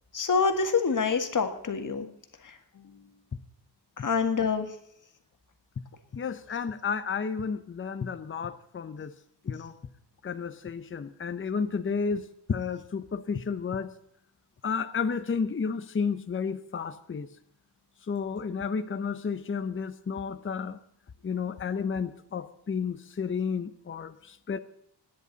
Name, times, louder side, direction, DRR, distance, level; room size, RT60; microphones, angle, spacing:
voice 1, 0.1-2.1 2.4-2.5 4.0-4.7, left 5 dB, 45° left, 6 dB, 1.7 m, -26 dB
voice 2, 6.1-9.1 9.4-9.8 10.2-13.9 14.6-17.3 18.1-20.8 21.2-24.6, left 5 dB, 30° left, 10 dB, 0.8 m, -32 dB
25.5 x 10.0 x 4.0 m, 0.71 s
wide cardioid pair, 120°, 42 cm